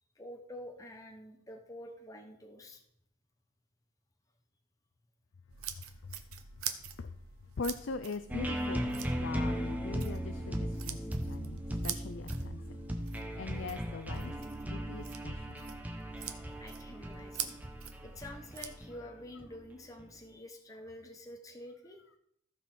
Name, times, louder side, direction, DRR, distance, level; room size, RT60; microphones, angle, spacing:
voice 1, 0.2-2.8 16.6-17.5 18.0-22.0, left 1 dB, 15° left, 3 dB, 1.0 m, -48 dB
sound 1, 5.5-18.8, right 9 dB, 85° right, 0.9 m, -45 dB
voice 2, 7.6-12.8 13.1-14.3 14.7-15.7, left 4 dB, 60° left, 11 dB, 0.5 m, -41 dB
sound 2, 8.3-20.1, equal, 10° right, 0.8 m, -37 dB
14.5 x 5.5 x 4.3 m, 0.73 s
head